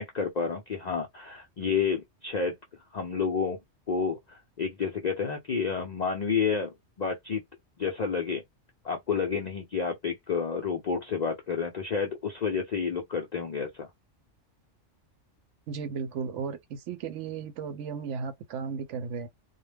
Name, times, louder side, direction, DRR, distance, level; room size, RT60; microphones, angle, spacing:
voice 1, 0.0-2.5 2.9-3.6 3.9-7.4 7.8-8.4 8.8-13.9, left 5 dB, 60° left, 0.4 m, -30 dB
voice 2, 15.7-19.3, right 6 dB, 70° right, 0.8 m, -35 dB
2.2 x 2.0 x 3.2 m
omnidirectional pair, 1.3 m